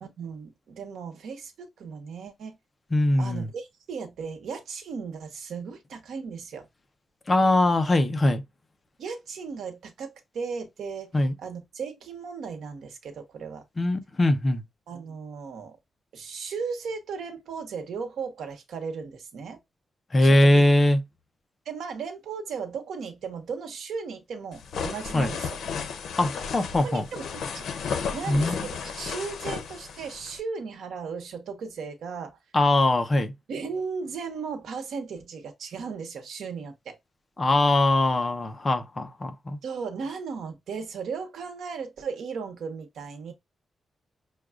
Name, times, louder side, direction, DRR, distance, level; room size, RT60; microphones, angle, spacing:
voice 1, 0.0-2.6 3.2-6.7 9.0-11.1 11.4-13.6 14.9-15.8 16.1-19.6 20.2-20.6 21.6-25.6 26.8-32.4 33.5-37.0 39.6-43.3, right 5 dB, 90° right, 1.1 m, -36 dB
voice 2, 2.9-3.5 7.3-8.4 11.1-11.3 13.8-14.6 20.1-21.0 25.1-25.3 26.2-27.0 28.3-28.7 32.5-33.3 37.4-39.6, left 1 dB, 25° left, 0.6 m, -21 dB
sound 1, 24.5-30.4, left 6 dB, 85° left, 0.6 m, -34 dB
6.3 x 2.3 x 2.3 m
wide cardioid pair, 165°, 0 cm